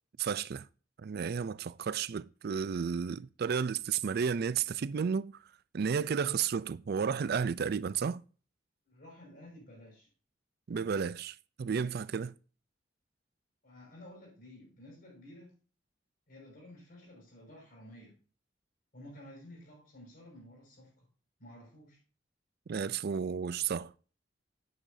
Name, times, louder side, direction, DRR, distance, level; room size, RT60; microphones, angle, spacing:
voice 1, 0.2-0.7 1.0-5.4 5.7-8.2 10.7-12.3 22.7-23.9, right 6 dB, 55° right, 0.4 m, -32 dB
voice 2, 8.9-10.1 13.6-15.5 16.3-18.1 18.9-21.0 21.4-22.0, left 1 dB, 55° left, 5.6 m, -52 dB
9.9 x 9.3 x 2.7 m
head